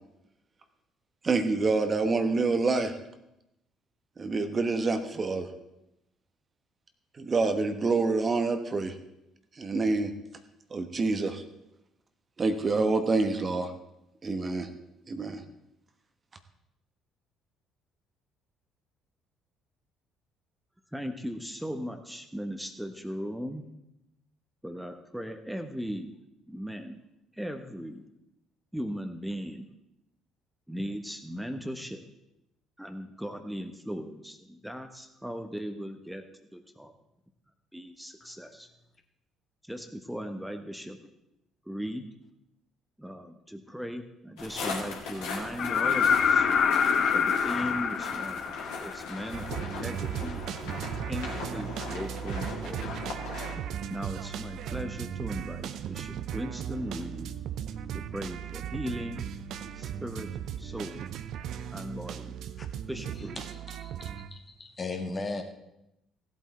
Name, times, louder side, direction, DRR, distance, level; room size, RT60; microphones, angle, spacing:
voice 1, 1.2-2.9 4.2-5.5 7.2-8.9 9.6-10.1 10.7-11.4 12.4-13.7 14.2-14.7 15.1-15.4, right 3 dB, 35° right, 7 dB, 1.2 m, -27 dB
voice 2, 20.9-23.6 24.6-26.1 26.5-27.0 27.3-28.0 28.7-29.7 30.7-32.0 32.8-36.9 37.7-38.7 39.6-41.0 41.6-42.1 43.0-46.5 47.1-50.4 51.1-53.0 53.9-57.3 57.9-59.2 59.7-60.3 60.6-61.1 61.7-62.3 62.9-63.4, equal, 5° right, 6 dB, 1.2 m, -38 dB
sound 1, 44.4-53.6, left 4 dB, 70° left, 2.6 m, -39 dB
sound 2, 45.6-49.4 51.3-51.4, left 6 dB, 55° left, 0.9 m, -25 dB
sound 3, 49.3-64.3, right 9 dB, 60° right, 0.6 m, -37 dB
voice 3, 63.4-65.4, left 3 dB, 35° left, 4 dB, 1.7 m, -37 dB
16.0 x 8.2 x 4.4 m, 0.87 s
hypercardioid pair, 50°, 0 cm